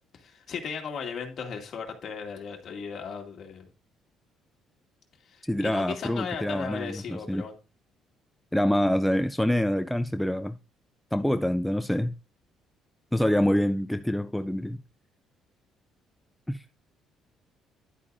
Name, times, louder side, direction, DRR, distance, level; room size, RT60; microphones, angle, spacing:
voice 1, 0.1-3.7 5.3-7.6, left 6 dB, 45° left, 2.1 m, -36 dB
voice 2, 5.4-7.4 8.5-10.6 11.1-12.1 13.1-14.8 16.5-16.6, left 1 dB, 5° left, 0.3 m, -26 dB
10.5 x 8.3 x 2.6 m
cardioid pair, 145°, 0 cm